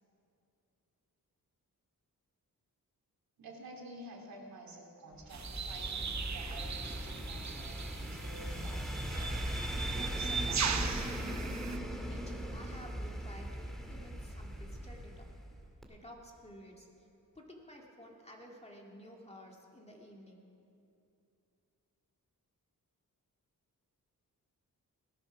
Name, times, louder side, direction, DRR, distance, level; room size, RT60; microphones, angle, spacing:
voice 1, 3.4-9.4 9.9-11.2, right 1 dB, 75° right, 0 dB, 2.8 m, -49 dB
sound 1, 5.2-15.6 15.8-15.9, equal, ahead, 1.9 m, -39 dB
sound 2, 5.3-11.8, right 6 dB, 50° right, 0.9 m, -39 dB
voice 2, 12.0-15.3 15.9-17.1 17.3-20.5, equal, 20° left, -1 dB, 2.1 m, -53 dB
17.0 x 12.5 x 6.1 m, 2.7 s
wide cardioid pair, 100°, 35 cm